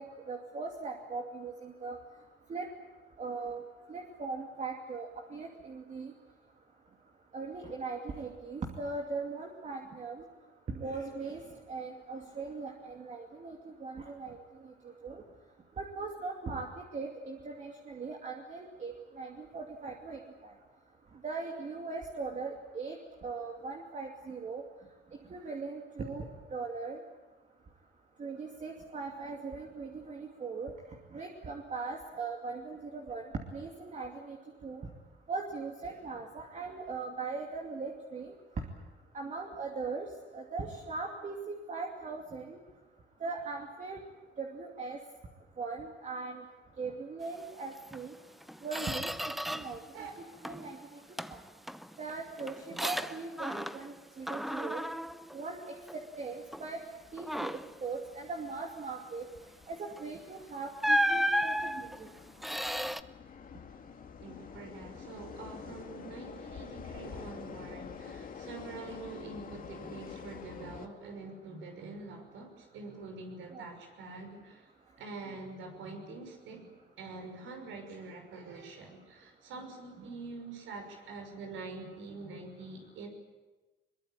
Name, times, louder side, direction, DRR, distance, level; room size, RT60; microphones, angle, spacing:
voice 1, 0.0-2.0 2.5-2.7 3.2-3.6 3.9-6.1 7.3-10.2 10.7-11.4 11.7-14.4 15.0-15.2 15.8-20.5 21.2-23.0 23.2-24.6 25.3-26.2 26.5-27.0 28.2-30.7 31.1-34.4 34.6-34.9 35.3-38.3 39.1-40.1 40.3-42.6 43.2-44.0 44.4-45.0 45.6-46.4 46.8-48.1 48.6-49.1 49.5-49.8 50.4-51.0 51.3-51.4 52.0-54.8 55.3-55.6 56.2-56.8 57.1-59.2 59.7-62.1 73.5-73.6 80.0-80.1, right 4 dB, 35° right, 1 dB, 2.6 m, -39 dB
Squeak, 47.9-48.0 48.4-49.8 50.2-50.7 51.2-54.0 54.3-56.1 56.5-56.7 57.2-57.8 59.9-60.1 60.8-63.0, equal, ahead, 0.7 m, -34 dB
sound 1, 55.8-70.9, left 6 dB, 45° left, 2.2 m, -48 dB
voice 2, 64.2-74.7 75.0-76.7 77.0-83.1, right 3 dB, 80° right, 4 dB, 6.0 m, -45 dB
22.0 x 22.0 x 8.9 m, 1.2 s
cardioid pair, 115°, 20 cm